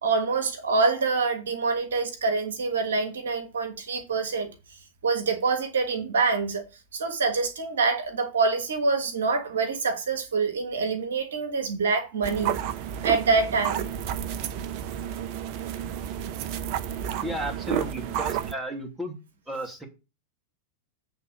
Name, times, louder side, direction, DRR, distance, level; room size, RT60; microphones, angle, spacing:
voice 1, 0.0-4.5 5.0-6.6 6.9-12.5 13.0-13.9, right 4 dB, 65° right, 1.4 m, -26 dB
sound 1, 12.2-18.5, right 9 dB, 45° right, 0.7 m, -31 dB
voice 2, 17.2-19.2 19.5-19.9, equal, 5° right, 2.3 m, -33 dB
8.1 x 3.7 x 6.6 m
figure-of-eight pair, 90°, 0 cm